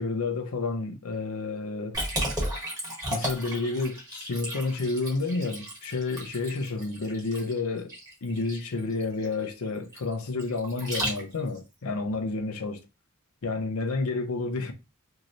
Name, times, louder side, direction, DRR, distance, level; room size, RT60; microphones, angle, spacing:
voice 1, 0.0-2.0 3.1-7.9 8.2-12.8 13.4-14.7, left 3 dB, 80° left, 0.6 m, -30 dB
Liquid, 1.9-11.6, right 1 dB, 15° right, 1.1 m, -34 dB
3.0 x 2.7 x 2.5 m
head